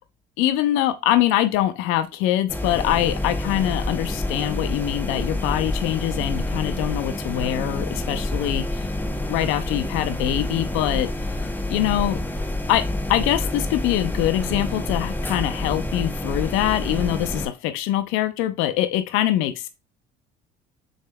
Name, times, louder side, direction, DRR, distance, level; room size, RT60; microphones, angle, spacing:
voice 1, 0.4-8.9 9.3-11.1 11.7-12.2 12.7-12.8 13.1-19.7, left 13 dB, 70° left, 0.6 m, -23 dB
sound 1, 2.5-17.5, left 1 dB, 10° left, 0.8 m, -28 dB
6.3 x 3.4 x 2.2 m
supercardioid pair, 80°, 21 cm